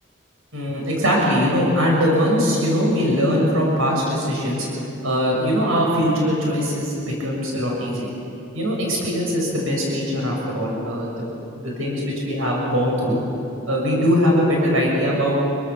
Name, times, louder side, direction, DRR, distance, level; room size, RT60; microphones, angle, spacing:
voice 1, 0.5-4.7 5.0-8.1 8.5-11.1 11.6-13.2 13.7-15.4, equal, 85° right, -2 dB, 6.5 m, -21 dB
27.0 x 23.5 x 7.2 m, 2.8 s
head